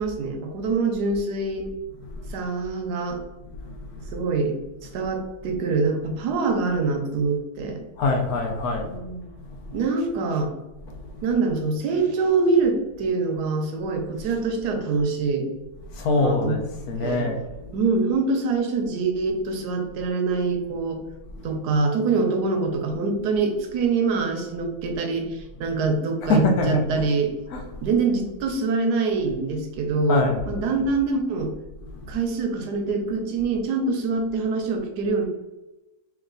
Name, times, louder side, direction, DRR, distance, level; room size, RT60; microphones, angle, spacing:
voice 1, 0.0-1.7 2.3-3.2 4.1-7.8 8.9-9.2 9.7-10.5 11.2-15.5 16.2-16.5 17.0-17.3 17.7-21.0 21.4-27.3 27.8-31.5 32.1-35.3, right 4 dB, 80° right, 4 dB, 1.3 m, -25 dB
voice 2, 2.0-2.3 3.5-4.1 8.0-9.0 9.4-9.7 10.8-11.3 15.9-17.7 21.3-21.6 26.2-27.0 27.5-27.9 30.1-30.4 31.8-32.2, left 2 dB, 70° left, 3 dB, 1.2 m, -25 dB
3.2 x 3.1 x 3.8 m, 1.0 s
omnidirectional pair, 1.7 m